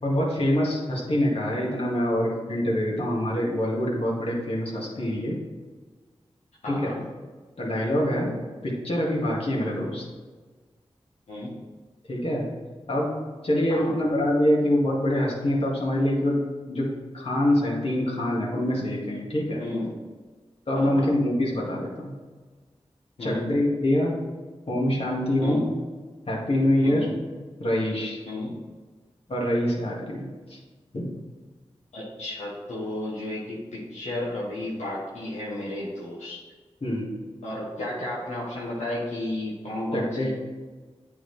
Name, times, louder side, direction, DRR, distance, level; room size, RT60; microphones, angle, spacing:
voice 1, 0.0-5.4 6.7-6.9 7.6-8.3 8.6-10.0 12.1-12.5 12.9-13.2 13.4-16.4 16.7-19.6 20.7-22.1 23.2-24.2 24.7-25.7 26.3-27.1 27.6-28.2 29.3-30.6 30.9-31.1 36.8-37.2 39.9-40.3, left 1 dB, 60° left, -4 dB, 2.0 m, -25 dB
voice 2, 6.6-7.0 11.3-11.5 13.7-13.9 19.6-19.9 20.7-21.1 23.2-23.4 25.4-25.7 26.8-27.1 28.3-28.5 31.9-36.4 37.4-40.3, left 1 dB, 90° left, -6 dB, 1.3 m, -33 dB
8.8 x 3.8 x 3.4 m, 1.4 s
cardioid pair, 40°, 11 cm